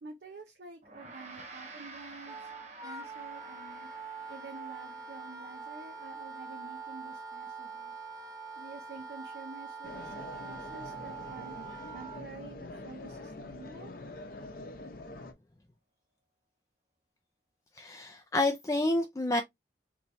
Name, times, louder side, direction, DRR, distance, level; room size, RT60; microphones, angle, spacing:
voice 1, 0.0-2.5 2.8-3.9 4.3-7.9 8.5-11.6 11.9-13.9, right 3 dB, 65° right, 0.7 m, -49 dB
Gong, 0.8-10.4, right 3 dB, 40° right, 1.2 m, -52 dB
Wind instrument woodwind instrument, 2.3-12.2, right 4 dB, 20° right, 0.7 m, -44 dB
sound 1, 9.8-15.3, left 2 dB, 55° left, 0.7 m, -45 dB
voice 2, 17.7-19.4, left 2 dB, 20° left, 0.4 m, -29 dB
4.2 x 3.0 x 2.6 m
head